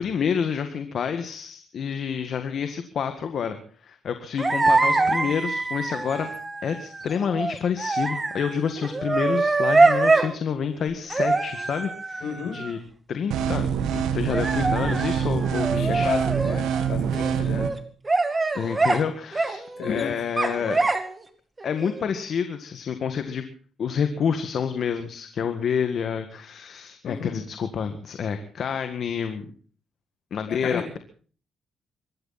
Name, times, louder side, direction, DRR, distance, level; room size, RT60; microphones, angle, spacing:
voice 1, 0.0-6.3 6.6-12.2 12.5-12.8 13.1-13.7 13.9-16.1 18.5-20.8 21.6-23.4 23.8-29.5 30.3-31.0, left 7 dB, 60° left, 8 dB, 1.8 m, -28 dB
sound 1, 4.4-10.3 11.1-12.7 14.3-16.9 17.1-17.8 18.0-19.0 19.3-20.0 20.4-21.2 21.6-22.0, right 3 dB, 25° right, 2.1 m, -24 dB
voice 2, 12.2-12.6 15.7-17.7 19.8-20.1 27.0-27.3 30.5-31.0, left 6 dB, 75° left, 3 dB, 7.8 m, -32 dB
sound 2, 13.3-17.7, right 8 dB, 85° right, 1.8 m, -25 dB
24.5 x 13.0 x 4.2 m, 0.43 s
cardioid pair, 90°, 0 cm